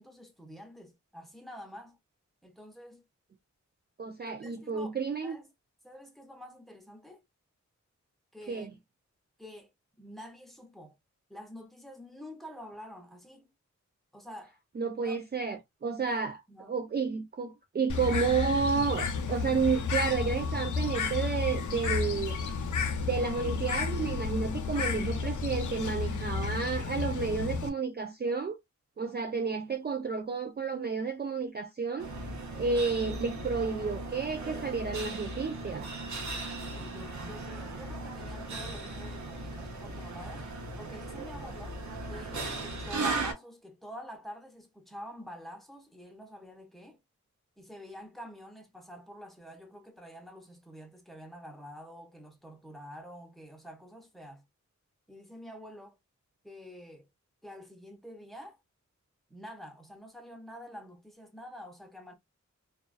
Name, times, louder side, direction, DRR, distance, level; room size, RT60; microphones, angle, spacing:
voice 1, 0.0-2.0 2.4-3.0 4.2-5.0 5.2-5.5 5.8-7.2 8.3-8.7 9.4-9.7 10.0-11.0 11.3-13.5 14.1-14.6 15.0-15.2 16.1-16.7 36.8-40.5 40.8-41.8 42.1-47.0 47.6-54.4 55.1-56.0 56.4-57.1 57.4-58.6 59.3-62.1, equal, ahead, 0.8 m, -47 dB
voice 2, 4.0-5.4 8.5-8.7 14.8-16.4 16.7-22.4 23.0-28.6 29.0-32.1 32.5-35.9, right 5 dB, 35° right, 0.4 m, -31 dB
Bird, 17.9-27.7, left 5 dB, 85° left, 0.5 m, -32 dB
sound 1, 32.0-43.3, right 2 dB, 70° right, 0.7 m, -37 dB
2.3 x 2.3 x 2.3 m
wide cardioid pair, 75°, 30 cm